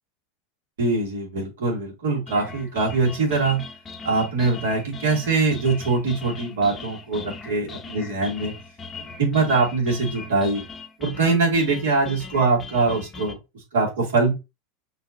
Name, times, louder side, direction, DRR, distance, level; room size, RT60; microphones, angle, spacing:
voice 1, 0.8-3.6 4.0-8.5 9.2-10.6 11.0-13.4 13.7-14.3, right 3 dB, 80° right, -2 dB, 2.6 m, -22 dB
sound 1, 2.3-13.3, left 4 dB, 25° left, 0.9 m, -39 dB
5.9 x 3.0 x 2.7 m, 0.25 s
hypercardioid pair, 100°, 0 cm